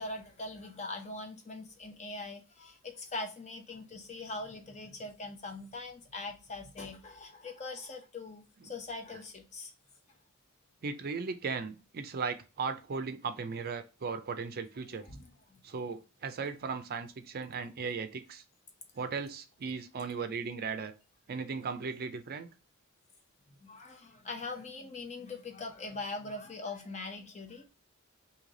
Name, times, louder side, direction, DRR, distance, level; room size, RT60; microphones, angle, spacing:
voice 1, 0.0-9.7 14.8-15.6 23.5-27.7, left 2 dB, 30° left, 0.8 m, -42 dB
voice 2, 10.8-15.1 15.6-18.4 19.0-20.9 21.3-22.5, right 5 dB, 45° right, 0.5 m, -37 dB
3.2 x 2.8 x 3.8 m
head